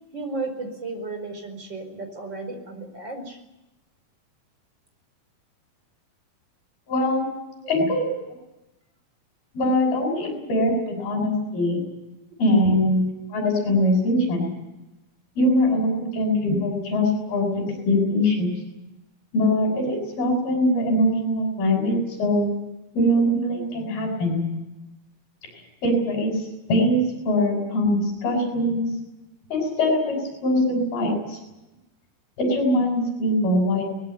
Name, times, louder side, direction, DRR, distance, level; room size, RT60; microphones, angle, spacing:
voice 1, 0.1-3.4 7.6-7.9 10.3-10.5 16.1-16.3, right 3 dB, 30° right, 5 dB, 5.3 m, -34 dB
voice 2, 6.9-7.3 7.7-8.0 9.5-11.8 12.4-13.1 13.3-14.5 15.4-18.5 19.3-22.5 22.9-24.4 25.8-26.4 26.7-28.9 29.5-30.2 30.4-31.4 32.4-33.8, left 1 dB, 90° left, 1 dB, 8.7 m, -22 dB
23.0 x 20.5 x 8.6 m, 0.96 s
omnidirectional pair, 4.2 m